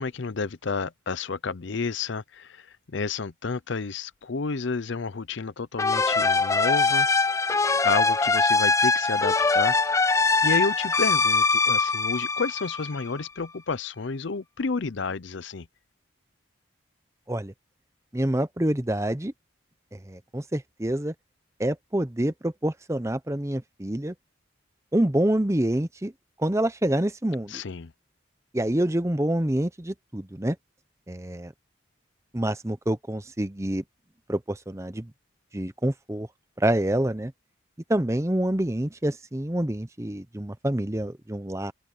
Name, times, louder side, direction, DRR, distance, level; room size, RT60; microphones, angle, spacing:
voice 1, 0.0-7.2 7.8-9.7 10.4-15.7 27.5-27.9, left 4 dB, 65° left, 0.6 m, -30 dB
sound 1, 5.8-13.2, left 3 dB, 15° left, 0.3 m, -22 dB
voice 2, 18.1-19.3 19.9-21.1 21.6-24.1 24.9-26.1 26.4-27.6 28.5-30.6 31.1-31.5 32.3-33.8 34.3-35.1 35.5-36.3 36.6-37.3 37.9-41.7, right 1 dB, 15° right, 0.7 m, -27 dB
open air
head